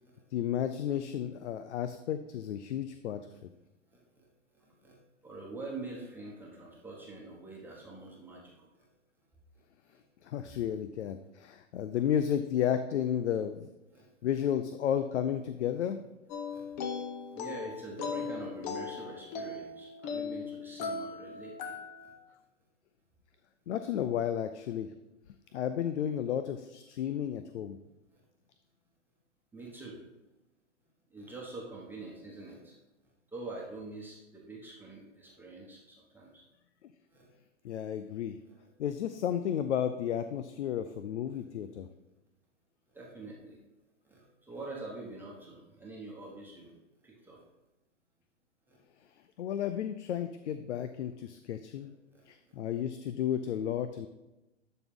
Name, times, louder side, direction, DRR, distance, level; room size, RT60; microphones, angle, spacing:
voice 1, 0.3-3.2 10.2-13.7 14.2-16.0 23.7-24.9 25.5-27.8 37.6-38.4 38.8-41.9 49.4-51.9 52.3-54.1, left 9 dB, 65° left, 10 dB, 0.6 m, -32 dB
voice 2, 3.9-4.3 4.5-8.9 9.9-10.0 13.9-14.4 16.4-16.7 17.1-22.1 25.4-25.6 28.1-28.2 29.5-30.0 31.1-32.8 33.3-36.4 37.1-37.3 38.5-38.7 41.3-41.4 42.9-43.6 44.0-46.7 47.0-47.4 48.7-48.8 51.7-52.5, right 2 dB, 5° right, -3 dB, 1.2 m, -46 dB
sound 1, 16.3-22.2, left 5 dB, 35° left, 0.9 m, -38 dB
12.0 x 4.1 x 3.7 m, 1.0 s
hypercardioid pair, 130°, 37 cm